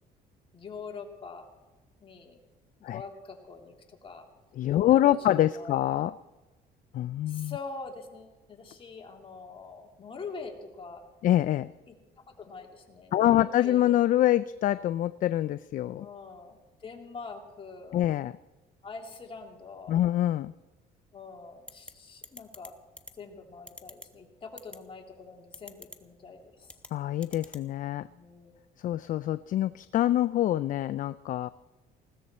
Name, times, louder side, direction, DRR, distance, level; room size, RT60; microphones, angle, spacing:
voice 1, 0.5-1.5 2.0-2.4 2.8-4.3 4.6-5.8 7.3-11.1 11.9-14.0 16.0-18.1 18.8-20.0 21.1-22.8 23.2-26.8 28.1-28.6, left 4 dB, 30° left, 2 dB, 2.7 m, -44 dB
voice 2, 4.6-6.1 6.9-7.6 11.2-11.7 13.1-16.1 17.9-18.3 19.9-20.5 26.9-28.1 28.8-31.5, left 13 dB, 50° left, 15 dB, 0.4 m, -25 dB
sound 1, 21.7-21.9 22.2-22.7 23.0-23.1 23.7-24.1 24.6-24.8 25.5-26.0 26.7-26.9 27.2-27.6, left 1 dB, 5° left, 1.1 m, -44 dB
20.5 x 16.0 x 4.3 m, 1.1 s
cardioid pair, 110°, 17 cm